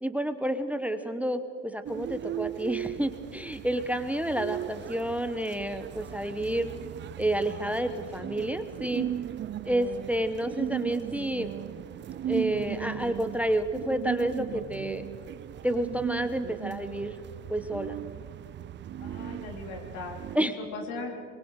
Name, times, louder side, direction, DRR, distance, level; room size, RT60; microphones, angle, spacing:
voice 1, 0.0-6.7 7.2-9.1 9.6-11.5 12.2-15.0 15.6-17.2 17.5-18.0 20.3-20.6, right 1 dB, 5° right, 11 dB, 1.0 m, -30 dB
sound 1, 1.9-20.4, right 11 dB, 30° right, 0.5 m, -37 dB
voice 2, 7.6-8.2 19.0-21.2, left 3 dB, 75° left, 2 dB, 3.6 m, -40 dB
25.5 x 22.5 x 4.8 m, 2.5 s
hypercardioid pair, 80°, 39 cm